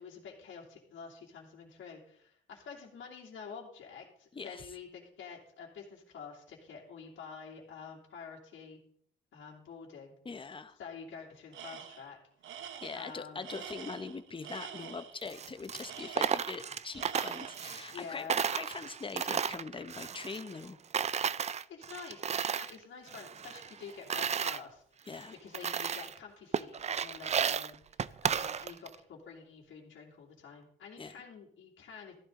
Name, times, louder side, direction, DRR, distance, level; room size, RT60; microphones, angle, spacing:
voice 1, 0.0-8.8 9.3-10.1 10.8-12.2 12.9-13.4 17.9-18.4 21.4-25.1 25.4-32.1, left 6 dB, 70° left, -4 dB, 2.7 m, -48 dB
voice 2, 4.3-4.6 10.2-10.8 12.8-20.8 25.1-25.3 31.0-31.1, left 4 dB, 25° left, 10 dB, 1.0 m, -42 dB
Tools, 11.5-12.1 12.4-15.2 15.8-16.7 16.9-17.8, right 8 dB, 75° right, 1.0 m, -46 dB
Coin (dropping), 15.2-18.0 18.3-20.7 20.9-22.8 23.1-24.6 25.1-25.2 25.5-26.2 26.5-29.0, right 7 dB, 35° right, 0.4 m, -34 dB
14.5 x 11.0 x 3.8 m, 0.65 s
cardioid pair, 90°, 20 cm